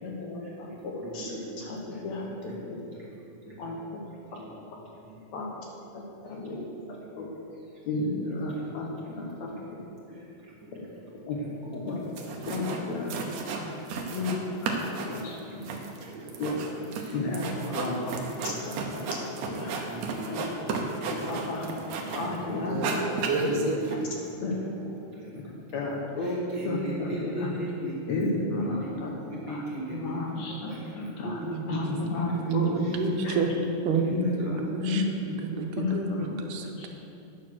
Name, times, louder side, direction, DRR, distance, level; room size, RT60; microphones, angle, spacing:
voice 1, 0.0-2.5 3.6-4.0 4.3-4.4 5.3-5.5 5.9-6.6 7.2-7.3 7.8-9.5 10.1-10.2 11.3-11.4 11.7-12.0 12.5-13.1 13.5-13.7 14.1-15.6 16.4-16.5 17.1-17.9 18.6-19.7 20.3-20.4 21.1-21.7 22.1-23.0 23.4-23.6 23.9-24.0 24.4-24.6 25.7-27.5 28.1-29.1 29.4-29.6 29.9-31.4 31.7-33.3 34.1-35.1 35.8-36.3 36.8-36.9, left 3 dB, 65° left, -1 dB, 2.4 m, -32 dB
voice 2, 1.0-1.6 3.4-3.6 7.2-7.3 17.0-17.1 17.8-18.4 19.9-20.4 20.8-21.3 22.0-22.6 23.7-24.1 26.2-30.8 31.2-33.0 33.3-33.4 33.8-34.5, right 1 dB, 50° right, -4 dB, 1.6 m, -39 dB
sound 1, 11.9-12.0 12.2-12.8 13.1-14.4 14.6-22.4 22.7-23.9, right 4 dB, 70° right, 1.9 m, -32 dB
voice 3, 31.4-31.8 32.5-33.5 33.8-36.9, right 5 dB, 85° right, 4 dB, 2.3 m, -30 dB
9.3 x 6.6 x 6.3 m, 2.7 s
omnidirectional pair, 3.6 m